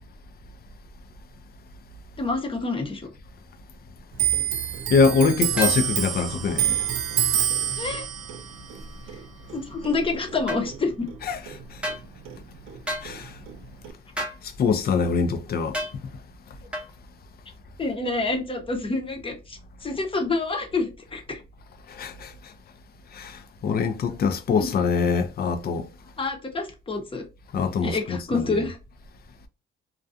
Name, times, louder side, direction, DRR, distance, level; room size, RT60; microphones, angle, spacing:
voice 1, 2.2-3.1 7.8-8.1 9.5-11.1 17.8-21.4 24.6-24.7 26.2-27.2 27.8-28.8, left 3 dB, 25° left, 0.8 m, -28 dB
Clock, 4.1-11.2 11.5-12.8 13.1-13.9, right 10 dB, 90° right, 0.4 m, -27 dB
voice 2, 4.9-6.9 11.3-11.4 11.7-11.8 13.0-13.4 14.4-15.8 21.9-22.3 23.1-25.9 27.5-28.6, left 5 dB, 50° left, 0.5 m, -24 dB
sound 1, 5.6-5.8 10.5-10.6 11.8-12.0 12.9-13.1 14.2-14.4 15.7-16.0 16.7-16.9, left 1 dB, 5° right, 0.8 m, -30 dB
2.4 x 2.2 x 2.5 m
cardioid pair, 90°, 20 cm